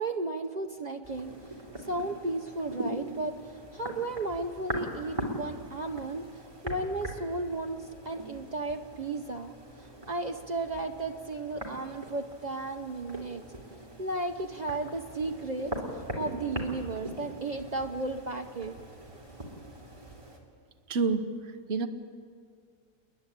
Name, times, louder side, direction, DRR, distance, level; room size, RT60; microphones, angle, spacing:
voice 1, 0.0-1.3 1.8-13.4 14.0-18.7, right 2 dB, 70° right, 4 dB, 0.4 m, -34 dB
sound 1, 1.0-20.4, right 1 dB, 20° right, 2.9 m, -41 dB
voice 2, 20.9-21.3 21.7-21.9, right 4 dB, 40° right, 6 dB, 1.2 m, -27 dB
29.5 x 10.5 x 10.0 m, 2.1 s
omnidirectional pair, 1.8 m